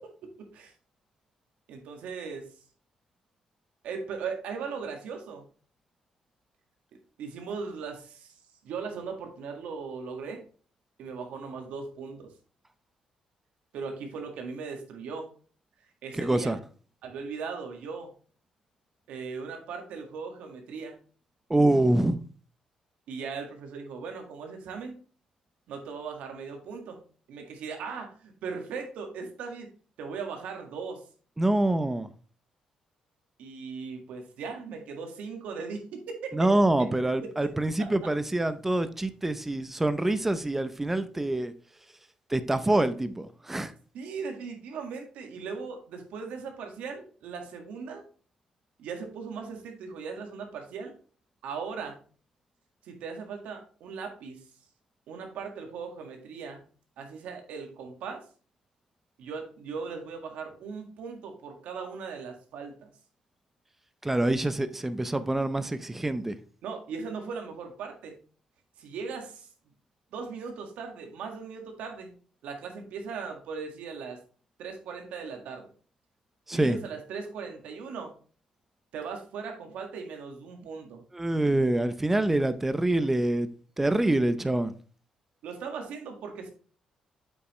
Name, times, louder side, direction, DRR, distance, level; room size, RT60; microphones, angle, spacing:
voice 1, 0.4-0.7 1.7-2.5 3.8-5.4 7.2-8.3 8.6-10.4 11.0-12.3 13.7-15.3 16.0-16.6 17.0-18.1 19.1-21.0 23.1-25.0 25.7-27.0 27.3-29.7 30.0-31.0 33.4-36.3 43.9-48.0 48.8-50.9 51.4-52.0 52.8-54.4 55.1-56.6 57.0-58.2 59.2-62.9 66.6-68.2 68.8-69.5 70.1-72.1 72.4-74.2 74.6-75.6 76.5-78.1 78.9-81.0 85.4-86.5, right 5 dB, 85° right, 1.8 m, -38 dB
voice 2, 16.2-16.6 21.5-22.2 31.4-32.1 36.3-41.5 42.3-43.7 64.0-66.4 76.5-76.8 81.1-83.5 83.8-84.7, right 1 dB, 10° right, 0.5 m, -25 dB
8.2 x 5.7 x 3.1 m
cardioid pair, 115°, 2 cm